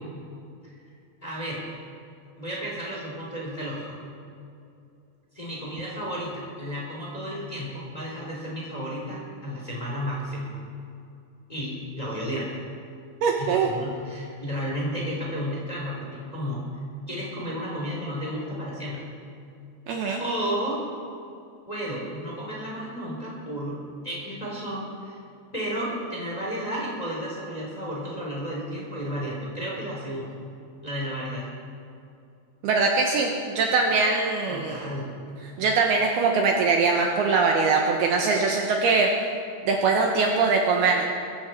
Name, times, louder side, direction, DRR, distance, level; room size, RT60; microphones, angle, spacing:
voice 1, 1.2-1.6 2.3-3.9 5.3-10.5 11.5-12.5 13.4-16.6 17.1-19.0 20.2-20.8 21.7-25.2 25.5-30.3 30.8-31.5 34.5-35.1, equal, 10° left, -4 dB, 3.1 m, -32 dB
voice 2, 13.2-13.7 19.9-20.2 32.6-34.8 35.6-39.1 39.7-41.0, right 4 dB, 70° right, 1 dB, 2.7 m, -22 dB
21.5 x 15.0 x 4.5 m, 2.6 s
omnidirectional pair, 5.3 m